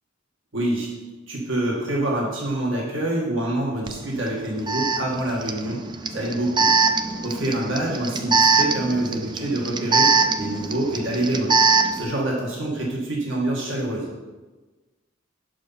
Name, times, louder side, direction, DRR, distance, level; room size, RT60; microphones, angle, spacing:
voice 1, 0.5-0.9 1.3-5.8 6.1-6.7 7.2-11.6 11.9-14.1, right 1 dB, 85° right, -2 dB, 1.5 m, -26 dB
Alarm, 3.9-4.0 4.7-12.0, right 4 dB, 25° right, 0.4 m, -22 dB
6.4 x 5.3 x 5.5 m, 1.2 s
head